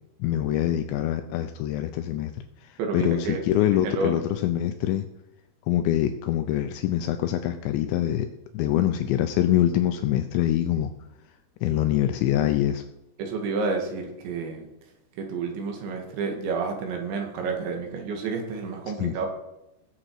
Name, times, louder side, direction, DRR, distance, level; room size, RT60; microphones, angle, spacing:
voice 1, 0.2-5.1 5.7-10.9 11.6-12.8 19.0-19.1, left 12 dB, 80° left, 8 dB, 2.7 m, -25 dB
voice 2, 2.8-3.4 3.8-4.3 13.2-14.7 15.2-19.3, right 4 dB, 70° right, 3 dB, 3.9 m, -30 dB
20.0 x 7.8 x 4.7 m, 0.91 s
omnidirectional pair, 5.8 m